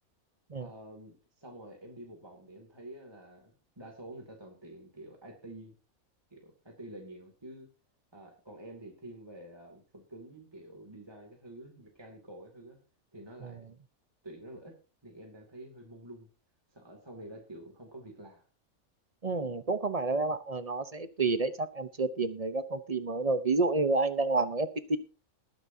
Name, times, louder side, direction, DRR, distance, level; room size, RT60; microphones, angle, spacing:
voice 1, 0.6-5.7 6.3-7.7 8.1-12.8 13.1-13.6 14.2-14.7 15.0-16.3 16.7-18.5, right 1 dB, 15° right, 1 dB, 2.5 m, -48 dB
voice 2, 19.2-25.0, right 3 dB, 35° right, 11 dB, 0.7 m, -29 dB
20.5 x 9.2 x 2.8 m, 0.34 s
omnidirectional pair, 1.5 m